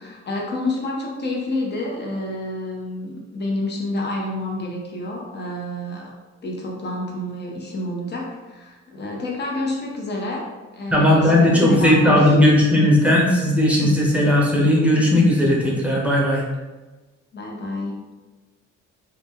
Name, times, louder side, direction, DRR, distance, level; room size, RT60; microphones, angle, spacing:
voice 1, 0.0-6.1 6.4-12.3 17.3-18.0, left 1 dB, 35° left, -1 dB, 0.8 m, -29 dB
voice 2, 10.9-16.4, left 1 dB, 5° right, -3 dB, 0.8 m, -16 dB
2.7 x 2.2 x 3.4 m, 1.2 s
cardioid pair, 90°, 30 cm